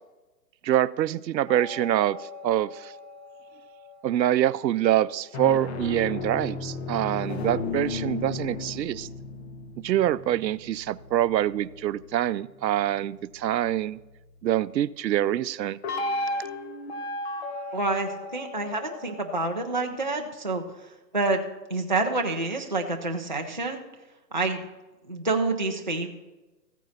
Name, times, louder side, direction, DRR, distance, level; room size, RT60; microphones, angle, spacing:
voice 1, 0.6-2.2 2.4-2.9 4.0-9.1 9.8-14.0 14.4-15.8, right 12 dB, 85° right, 18 dB, 0.6 m, -25 dB
sound 1, 1.5-4.1 5.2-12.0 15.8-20.1, left 2 dB, 40° left, 1.0 m, -35 dB
voice 2, 17.7-21.4 21.7-23.8 24.3-24.7 25.1-26.1, right 3 dB, 30° right, 2 dB, 0.4 m, -28 dB
15.0 x 9.2 x 4.1 m, 1.1 s
hypercardioid pair, 160°, 50 cm